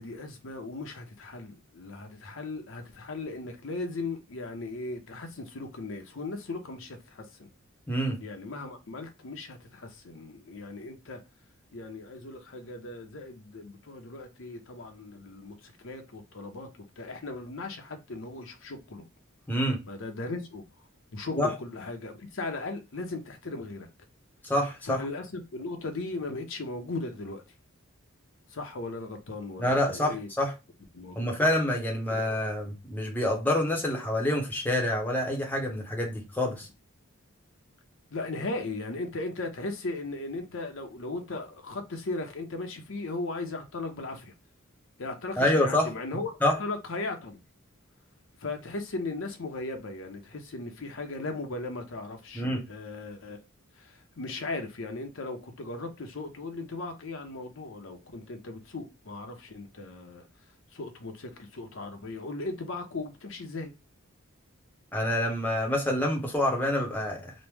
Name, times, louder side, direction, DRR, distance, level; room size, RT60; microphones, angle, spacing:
voice 1, 0.0-7.5 8.2-11.2 11.7-19.0 19.9-20.6 21.1-23.9 24.9-27.4 28.5-30.3 30.9-31.5 32.1-32.2 38.1-44.3 45.0-47.4 48.4-53.4 53.7-60.2 60.7-63.7, left 2 dB, 65° left, 0.7 m, -37 dB
voice 2, 7.9-8.2 19.5-19.8 21.4-21.5 24.5-25.0 29.6-30.5 31.2-36.7 45.4-45.9 46.4-46.5 52.3-52.6 64.9-67.3, left 1 dB, 10° left, 0.7 m, -27 dB
3.0 x 2.1 x 3.2 m
head